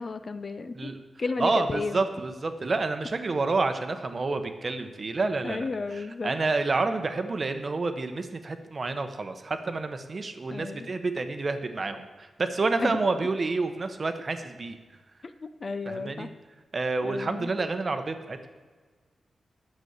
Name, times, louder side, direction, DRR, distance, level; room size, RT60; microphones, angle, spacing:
voice 1, 0.0-0.9 1.2-2.0 5.4-6.3 10.5-10.9 12.8-13.0 15.4-16.3 17.0-17.5, left 3 dB, 35° left, 10 dB, 0.5 m, -33 dB
voice 2, 1.4-14.8 15.9-16.3 16.7-18.5, right 3 dB, 35° right, 8 dB, 0.8 m, -29 dB
9.4 x 7.0 x 7.9 m, 1.4 s
wide cardioid pair, 165°, 0 cm